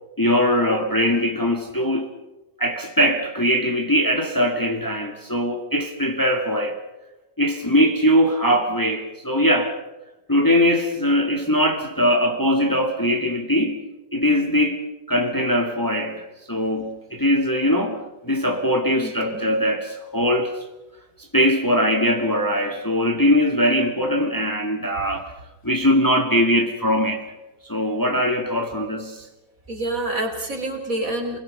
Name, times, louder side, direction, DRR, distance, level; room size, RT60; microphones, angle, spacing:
voice 1, 0.2-2.1 2.6-6.8 7.4-9.7 10.3-13.8 14.1-20.6 21.3-25.3 25.6-27.3 27.7-29.2, equal, 10° left, 2.3 m, -21 dB
voice 2, 19.0-19.4 25.0-25.1 29.7-31.4, right 1 dB, 50° right, 4.3 m, -27 dB
29.0 x 21.0 x 5.4 m
omnidirectional pair, 1.9 m